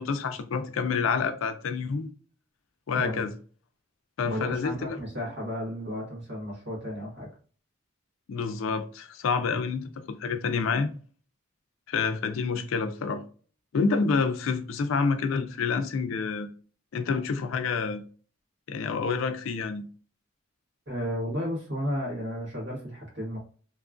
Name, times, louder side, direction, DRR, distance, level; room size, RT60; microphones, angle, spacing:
voice 1, 0.0-2.1 2.9-3.3 4.2-5.0 8.3-9.8 10.2-10.9 11.9-13.2 13.7-16.5 16.9-18.0 18.7-19.8, left 5 dB, 80° left, 0.4 m, -28 dB
voice 2, 4.2-7.3 20.9-23.4, equal, 60° right, 1.4 m, -33 dB
2.9 x 2.3 x 2.4 m
head